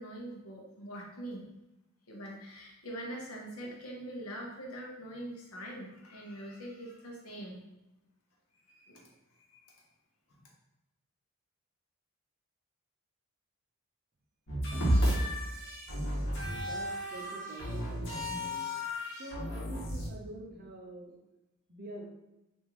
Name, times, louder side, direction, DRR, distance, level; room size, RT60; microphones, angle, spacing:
voice 1, 0.0-1.5 2.1-7.6 8.6-9.1 9.5-9.8 10.4-10.5, right 1 dB, 80° left, -1 dB, 0.8 m, -43 dB
sound 1, 14.5-20.1, equal, 55° left, 1.1 m, -32 dB
voice 2, 14.7-15.1 16.6-18.7 19.2-21.1 21.7-22.1, right 2 dB, 40° right, 0 dB, 0.6 m, -46 dB
3.5 x 2.6 x 2.9 m, 0.96 s
head